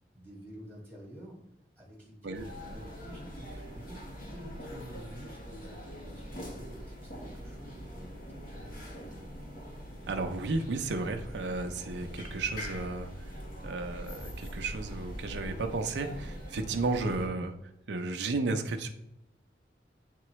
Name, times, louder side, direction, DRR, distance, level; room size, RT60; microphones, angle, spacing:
voice 1, 0.1-1.4 1.8-9.4, equal, 5° left, -5 dB, 1.6 m, -49 dB
sound 1, 2.3-17.3, equal, 50° left, 1.3 m, -43 dB
voice 2, 10.1-13.3 13.6-17.5 17.9-18.9, right 3 dB, 80° right, 5 dB, 0.6 m, -33 dB
8.4 x 3.7 x 3.1 m, 0.82 s
head